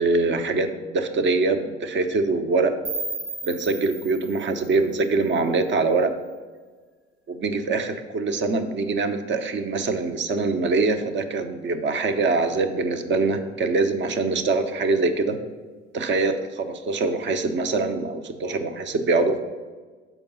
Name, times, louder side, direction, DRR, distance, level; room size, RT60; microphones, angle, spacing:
voice 1, 0.0-2.7 3.4-6.1 7.3-15.4 15.9-19.4, right 3 dB, 35° right, 8 dB, 0.7 m, -24 dB
sound 1, 2.8-5.8, right 3 dB, 70° right, 1.3 m, -35 dB
5.9 x 5.2 x 5.5 m, 1.4 s
figure-of-eight pair, 60°, 34 cm